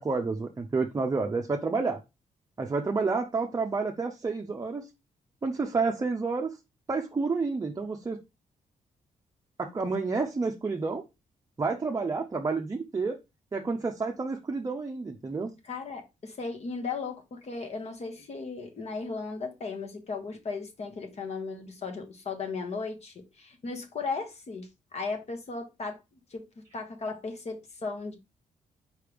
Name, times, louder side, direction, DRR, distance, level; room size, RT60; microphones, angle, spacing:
voice 1, 0.0-2.0 2.6-4.9 5.4-6.5 6.9-8.2 9.6-11.0 11.6-13.2 13.5-15.5, right 4 dB, 25° right, 0.6 m, -29 dB
voice 2, 15.6-26.0 26.3-26.5 26.7-28.1, left 4 dB, 50° left, 1.3 m, -36 dB
4.7 x 3.3 x 3.4 m
cardioid pair, 95°, 14 cm